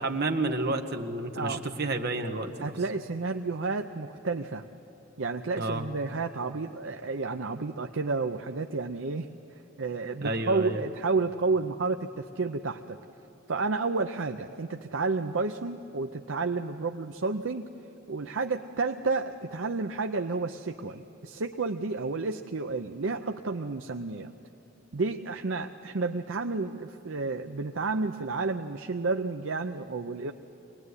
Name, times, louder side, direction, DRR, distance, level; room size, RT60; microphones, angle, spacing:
voice 1, 0.0-2.7 5.6-5.8 10.2-10.8, right 2 dB, 50° right, 4 dB, 1.5 m, -30 dB
voice 2, 2.6-4.6 5.2-9.3 9.8-13.0 13.5-17.7 18.1-24.3 24.9-30.3, right 3 dB, 70° right, 5 dB, 0.7 m, -31 dB
24.5 x 19.5 x 9.7 m, 2.9 s
head